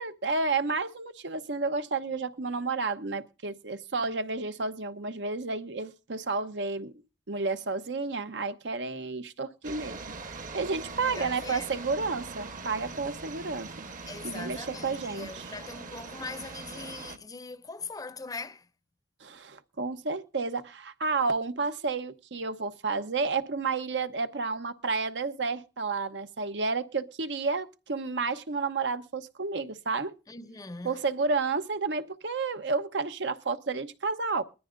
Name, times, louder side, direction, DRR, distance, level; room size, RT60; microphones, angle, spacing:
voice 1, 0.0-6.9 7.3-10.0 10.5-13.9 14.2-15.4 19.2-30.1 30.8-34.4, right 4 dB, 80° right, 1.0 m, -31 dB
sound 1, 9.6-17.2, right 3 dB, 50° right, 1.2 m, -42 dB
voice 2, 11.1-11.7 14.1-18.7 30.3-31.0, left 3 dB, 20° left, 0.6 m, -41 dB
21.0 x 14.0 x 2.6 m
head